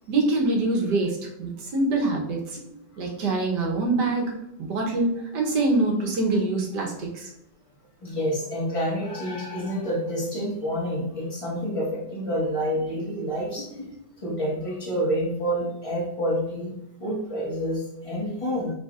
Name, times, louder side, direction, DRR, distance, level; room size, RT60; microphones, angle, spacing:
voice 1, 0.1-2.6 3.0-7.3, right 2 dB, 65° right, 0 dB, 1.6 m, -25 dB
voice 2, 8.0-13.9 14.2-16.7 17.0-18.7, equal, 20° left, -5 dB, 1.5 m, -28 dB
5.6 x 3.8 x 2.4 m, 0.87 s
omnidirectional pair, 2.0 m